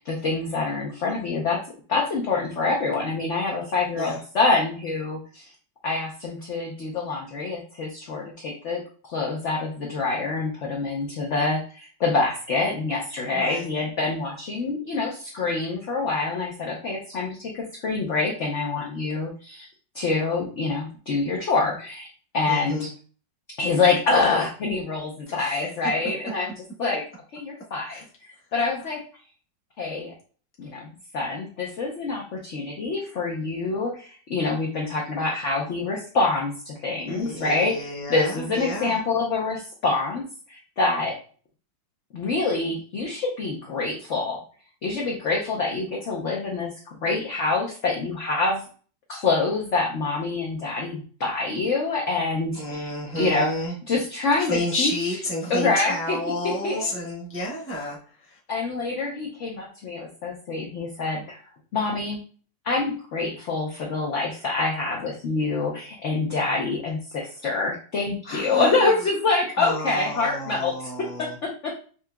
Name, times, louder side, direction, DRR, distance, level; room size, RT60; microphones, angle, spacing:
voice 1, 0.0-1.6 1.9-5.5 5.8-19.7 19.9-22.1 22.3-22.9 23.6-26.5 26.8-27.0 27.3-28.0 28.5-29.0 29.8-30.1 30.6-37.7 38.1-40.2 40.5-41.1 42.1-44.4 44.8-48.6 49.1-52.9 53.1-53.5 53.9-54.9 55.5-56.2 56.6-56.9 58.5-61.4 61.7-62.2 62.6-70.7 71.0-71.7, left 3 dB, 60° left, -2 dB, 0.8 m, -26 dB
voice 2, 13.3-13.7 22.5-22.9 25.3-25.7 27.9-28.1 37.1-39.0 52.5-53.7 54.4-58.4 68.2-68.9 69.6-71.4, left 1 dB, 10° left, -4 dB, 0.9 m, -31 dB
5.8 x 2.8 x 2.2 m, 0.41 s
omnidirectional pair, 2.0 m